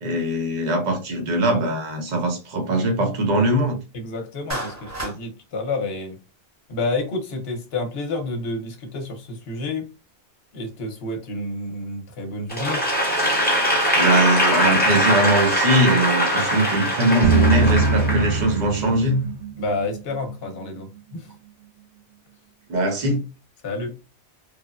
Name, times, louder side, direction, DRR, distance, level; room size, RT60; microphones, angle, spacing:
voice 1, 0.0-3.8 13.9-19.2 22.7-23.2, right 1 dB, 45° right, 0.9 m, -21 dB
voice 2, 3.9-6.2 6.7-9.9 10.5-12.9 19.6-21.3 23.6-24.0, left 2 dB, 60° left, 1.0 m, -29 dB
Clapping, 4.5-5.2, right 1 dB, 15° right, 0.8 m, -30 dB
Applause / Crowd, 12.5-18.8, equal, 10° left, 0.9 m, -21 dB
sound 1, 17.2-20.2, right 3 dB, 75° right, 0.9 m, -21 dB
3.2 x 2.1 x 2.4 m
omnidirectional pair, 1.2 m